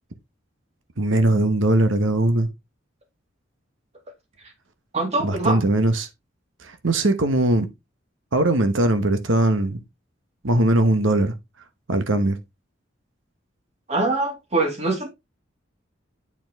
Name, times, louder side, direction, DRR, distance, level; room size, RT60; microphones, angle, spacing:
voice 1, 1.0-2.5 5.2-6.1 6.6-7.7 8.3-9.8 10.4-11.3 11.9-12.4, right 1 dB, 75° right, 1.0 m, -20 dB
voice 2, 4.9-5.6 13.9-15.1, right 2 dB, 35° right, 2.2 m, -23 dB
8.5 x 4.6 x 3.4 m
head